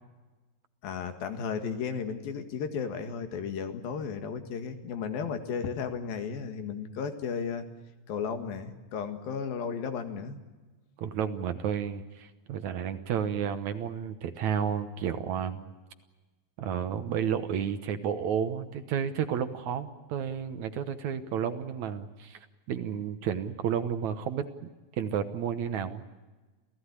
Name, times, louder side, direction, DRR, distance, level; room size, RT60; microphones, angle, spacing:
voice 1, 0.8-7.7 8.1-10.4, left 6 dB, 85° left, 7 dB, 3.7 m, -34 dB
voice 2, 11.0-15.7 16.6-24.7 25.0-26.0, right 8 dB, 65° right, 9 dB, 2.1 m, -31 dB
28.0 x 17.0 x 9.8 m, 1.2 s
omnidirectional pair, 4.0 m